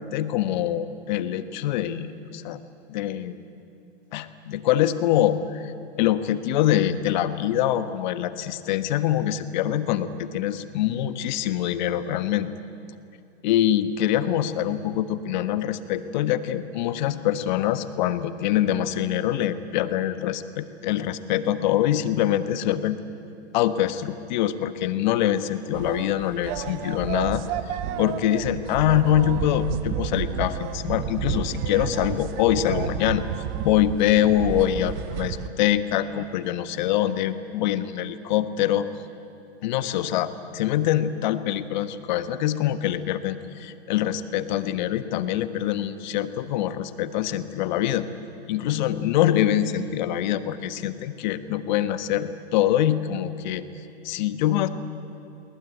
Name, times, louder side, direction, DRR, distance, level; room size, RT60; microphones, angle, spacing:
voice 1, 0.0-2.6 2.9-3.4 4.1-5.7 6.0-12.5 13.4-23.0 23.5-33.2 33.6-38.9 39.6-48.1 48.5-53.6 54.0-54.7, left 11 dB, 45° left, 11 dB, 1.3 m, -24 dB
sound 1, 25.7-35.5, right 9 dB, 35° right, 1.2 m, -31 dB
23.0 x 20.0 x 9.3 m, 2.7 s
hypercardioid pair, 130°, 32 cm